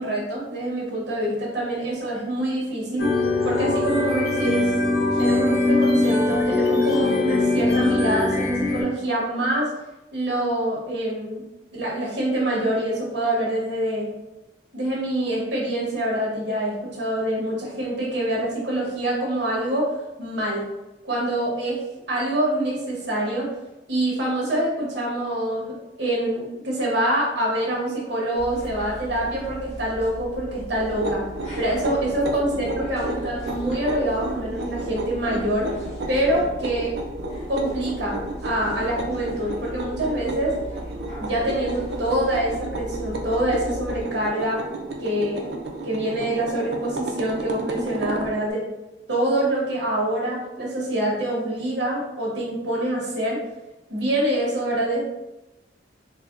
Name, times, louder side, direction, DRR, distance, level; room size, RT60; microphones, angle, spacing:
voice 1, 0.0-3.1 3.4-4.7 5.2-9.7 10.1-11.4 11.7-14.1 14.7-20.6 21.0-21.8 22.1-23.5 23.9-31.2 31.5-35.7 36.1-36.9 37.5-40.6 41.2-44.6 45.0-45.5 45.8-48.7 49.1-53.4 53.9-55.0, right 1 dB, 85° right, -4 dB, 1.2 m, -25 dB
sound 1, 3.0-8.8, left 2 dB, 60° left, 0.7 m, -21 dB
sound 2, 28.3-44.0, equal, 40° left, 1.0 m, -38 dB
sound 3, 30.9-48.3, right 2 dB, 70° right, 0.5 m, -33 dB
4.1 x 2.2 x 2.5 m, 0.96 s
head